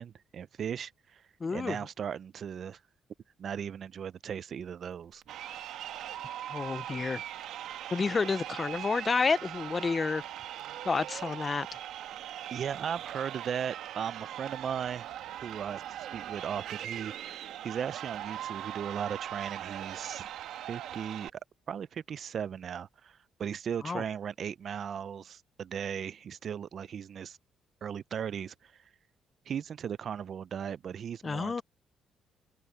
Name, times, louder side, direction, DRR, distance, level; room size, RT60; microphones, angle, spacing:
voice 1, 0.0-1.2 1.5-2.8 3.4-5.2 12.5-15.1 15.4-20.3 20.7-21.3 21.7-27.4 27.8-28.7 29.5-31.6, right 8 dB, 55° right, 0.5 m, -37 dB
voice 2, 1.4-1.8 6.5-7.2 7.9-10.2 10.9-11.7 23.8-24.0 31.2-31.6, left 4 dB, 35° left, 0.5 m, -30 dB
Crowd, 5.2-21.3, right 11 dB, 85° right, 1.2 m, -40 dB
open air
cardioid pair, 90°, 0 cm